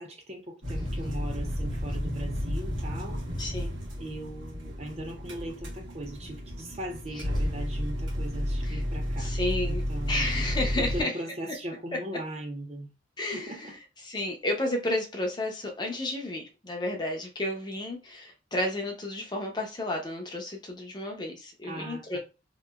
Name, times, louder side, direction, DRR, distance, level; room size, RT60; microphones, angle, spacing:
voice 1, 0.0-3.2 4.0-9.3 9.7-10.3 10.8-12.9 13.3-13.7 21.6-22.2, right 1 dB, 35° right, 0.5 m, -39 dB
sound 1, 0.6-11.0, equal, 75° right, 1.1 m, -32 dB
voice 2, 3.4-3.7 8.6-8.8 9.2-11.1 13.2-13.8 14.0-22.2, left 1 dB, 20° left, 0.6 m, -32 dB
2.9 x 2.6 x 2.3 m
head